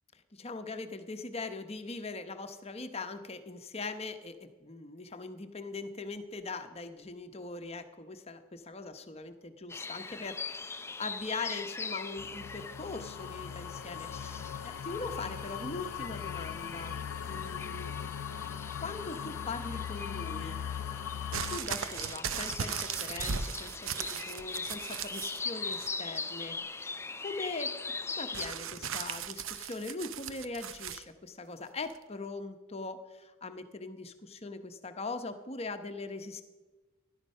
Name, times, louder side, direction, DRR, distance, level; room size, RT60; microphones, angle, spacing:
voice 1, 0.3-17.9 18.8-20.6 21.5-27.8 28.2-36.4, left 3 dB, 30° left, 8 dB, 1.0 m, -41 dB
sound 1, 9.7-28.5, left 4 dB, 10° left, 0.5 m, -41 dB
sound 2, 12.2-21.6, left 8 dB, 85° left, 0.4 m, -39 dB
sound 3, 21.3-25.4 25.7-26.3 28.3-31.0 31.9-32.0, right 7 dB, 65° right, 0.7 m, -37 dB
16.5 x 12.0 x 5.5 m, 1.2 s
head